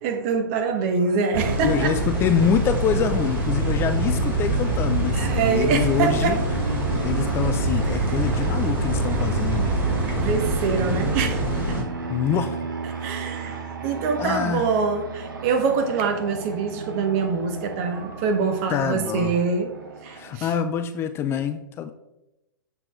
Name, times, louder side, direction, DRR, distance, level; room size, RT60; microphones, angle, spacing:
voice 1, 0.0-1.9 5.1-6.4 10.2-11.8 13.0-19.7 20.0-20.5, right 5 dB, 40° right, 5 dB, 1.1 m, -24 dB
sound 1, 1.3-11.8, right 2 dB, 20° right, 2.2 m, -24 dB
voice 2, 1.6-6.4 7.0-9.8 12.1-12.6 13.0-13.1 14.2-14.7 18.7-19.4 20.1-21.9, left 8 dB, 20° left, 10 dB, 0.3 m, -25 dB
Fixed-wing aircraft airplane, 5.1-20.3, right 4 dB, 75° right, 1.2 m, -34 dB
6.7 x 4.2 x 4.6 m, 0.94 s
figure-of-eight pair, 110°, 11 cm